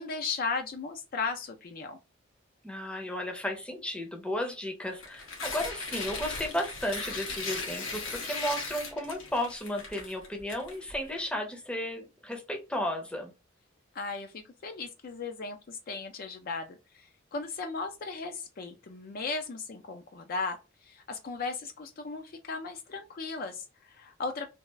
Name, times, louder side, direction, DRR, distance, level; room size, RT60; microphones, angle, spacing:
voice 1, 0.0-2.0 13.9-20.6 20.8-24.5, left 4 dB, 45° left, 0.4 m, -36 dB
voice 2, 2.6-13.3, left 1 dB, 5° left, 0.6 m, -34 dB
Tearing, 4.9-11.2, left 3 dB, 85° left, 1.1 m, -38 dB
3.4 x 2.4 x 3.1 m
head